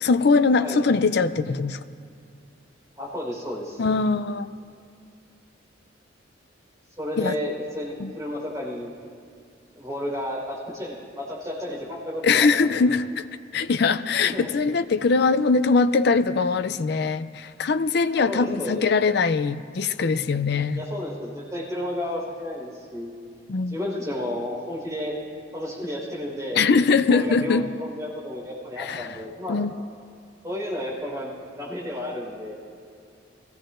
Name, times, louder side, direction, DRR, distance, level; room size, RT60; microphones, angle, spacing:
voice 1, 0.0-1.8 3.8-4.5 7.2-7.4 8.0-8.1 12.2-13.2 13.5-20.8 23.5-23.8 26.6-27.7 28.8-29.2 29.5-29.7, left 4 dB, 55° left, 11 dB, 0.4 m, -22 dB
voice 2, 3.0-3.8 7.0-8.9 9.8-12.8 14.2-14.5 18.1-18.8 20.7-23.1 23.7-25.1 25.5-26.6 27.1-29.6 30.4-32.6, left 1 dB, 20° right, -5 dB, 4.3 m, -32 dB
22.5 x 15.5 x 2.6 m, 2.4 s
head